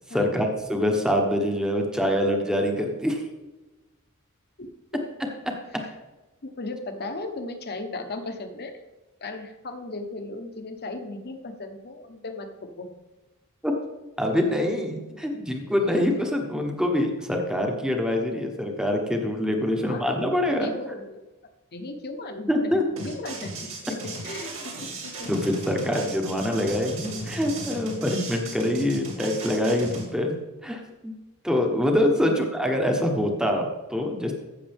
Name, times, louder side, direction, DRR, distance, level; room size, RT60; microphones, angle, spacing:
voice 1, 0.1-3.2 13.6-13.7 14.2-20.7 22.5-22.8 25.3-30.4 30.6-31.1 31.4-34.3, left 1 dB, 5° right, 2 dB, 1.1 m, -25 dB
voice 2, 6.4-8.7 9.2-12.9 15.1-15.2 19.6-21.2 21.7-23.7 24.0-25.3 32.1-32.4, left 2 dB, 50° left, 6 dB, 1.1 m, -36 dB
sound 1, 23.0-30.0, right 2 dB, 65° right, 2.8 m, -36 dB
14.5 x 6.6 x 3.5 m, 1.1 s
head